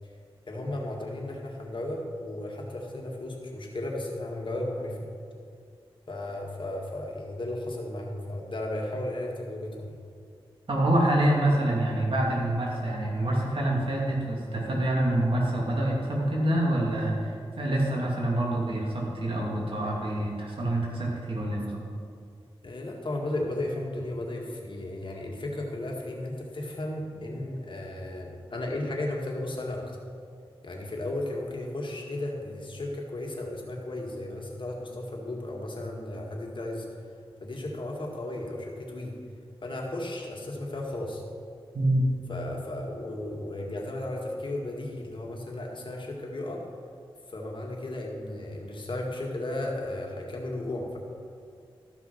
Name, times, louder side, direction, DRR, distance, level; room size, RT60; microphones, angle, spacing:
voice 1, 0.5-5.1 6.1-10.0 22.6-30.0 30.6-36.9 37.4-39.1 39.6-41.2 42.3-46.6 47.3-51.0, left 1 dB, 55° left, -1 dB, 1.9 m, -34 dB
voice 2, 10.7-21.8 41.7-42.1, right 1 dB, 65° right, -3 dB, 2.6 m, -26 dB
13.5 x 6.0 x 5.7 m, 2.2 s
wide cardioid pair, 60°, 10 cm